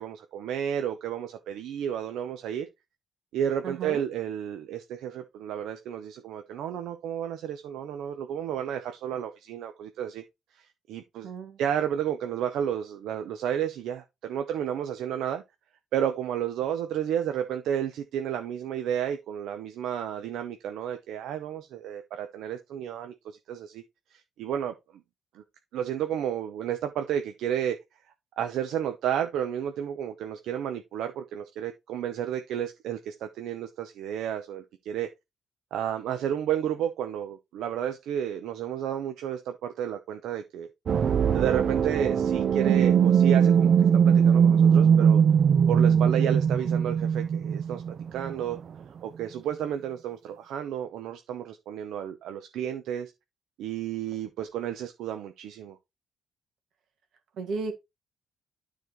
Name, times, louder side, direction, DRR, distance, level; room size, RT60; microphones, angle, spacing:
voice 1, 0.0-2.7 3.3-10.2 10.6-11.3 11.6-15.4 15.9-23.8 24.1-24.7 25.3-25.4 25.7-27.8 28.4-35.1 35.7-40.7 41.3-45.2 45.7-47.8 48.1-48.6 49.0-53.1 53.6-55.8, right 9 dB, 85° right, 0.8 m, -32 dB
voice 2, 3.6-4.0 11.2-11.6 57.4-57.7, right 4 dB, 60° right, 2.0 m, -34 dB
sound 1, 40.9-48.6, right 7 dB, 40° right, 0.3 m, -21 dB
12.0 x 4.1 x 3.1 m
cardioid pair, 175°, 0 cm